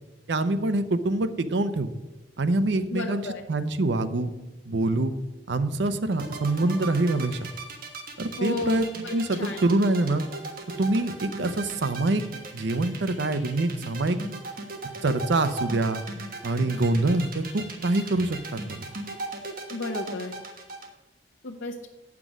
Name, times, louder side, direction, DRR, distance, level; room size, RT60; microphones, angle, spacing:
voice 1, 0.3-1.9 2.4-3.2 3.5-4.3 4.7-5.1 5.5-7.5 8.2-8.9 9.1-10.2 10.8-12.2 12.5-14.2 15.0-16.0 16.4-18.8, right 2 dB, 65° right, 11 dB, 0.6 m, -25 dB
voice 2, 2.9-3.4 8.4-9.6 19.7-20.3 21.4-21.9, left 2 dB, 75° left, -2 dB, 0.8 m, -33 dB
sound 1, 6.1-20.9, right 3 dB, 50° right, 1.3 m, -37 dB
9.1 x 6.0 x 6.1 m, 1.1 s
head